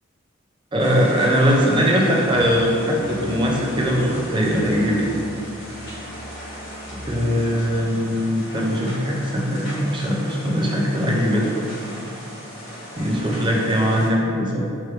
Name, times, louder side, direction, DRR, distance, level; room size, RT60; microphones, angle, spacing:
voice 1, 0.7-5.1 7.1-11.5 13.0-14.6, equal, 20° right, -2 dB, 0.5 m, -20 dB
sound 1, 0.8-14.1, equal, 45° left, 1.4 m, -37 dB
Musical instrument, 2.2-7.3, equal, 70° left, 0.9 m, -40 dB
3.3 x 3.1 x 4.8 m, 2.7 s
head